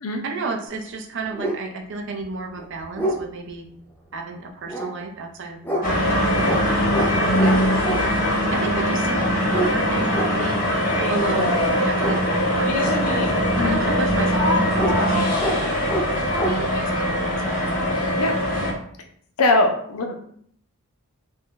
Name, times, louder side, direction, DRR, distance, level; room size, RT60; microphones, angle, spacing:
voice 1, 0.2-3.6 4.1-6.5 7.1-8.2 8.5-9.2 9.5-10.7 11.1-13.0 13.6-16.2 16.9-18.3, right 3 dB, 55° right, 2 dB, 0.5 m, -33 dB
sound 1, 0.7-0.8 1.3-1.6 2.2-2.3 2.6-3.2 4.7-4.9 5.6-5.8 6.4-6.6 6.9-7.1 7.4-8.0 9.5-9.7 10.1-10.3 11.3-11.5 12.0-12.2 14.7-14.9 15.4-15.6 15.9-16.1 16.3-16.5, right 1 dB, 10° left, 0.4 m, -26 dB
sound 2, 5.8-18.7, equal, 40° left, 0.8 m, -21 dB
voice 2, 19.4-20.1, left 2 dB, 80° left, 4 dB, 0.5 m, -21 dB
2.5 x 2.2 x 3.6 m, 0.63 s
head